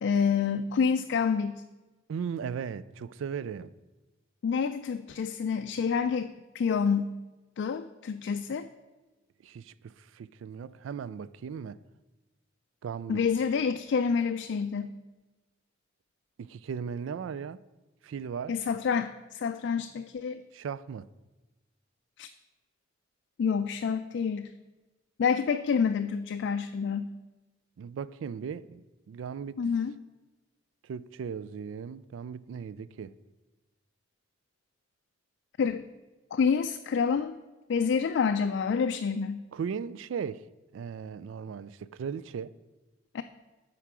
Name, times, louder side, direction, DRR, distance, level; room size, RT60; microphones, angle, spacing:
voice 1, 0.0-1.6 4.4-7.1 7.6-8.7 13.1-14.9 18.5-20.4 22.2-22.3 23.4-24.5 25.2-27.1 29.6-29.9 35.6-35.8 36.3-37.4 37.7-39.4 43.1-43.2, left 6 dB, 65° left, 0.3 m, -28 dB
voice 2, 2.1-3.7 9.4-11.8 12.8-13.2 16.4-17.6 18.0-18.6 20.5-21.1 27.8-29.6 30.8-33.1 39.5-40.4 40.7-42.5, right 6 dB, 80° right, 0.3 m, -37 dB
8.3 x 4.6 x 6.0 m
head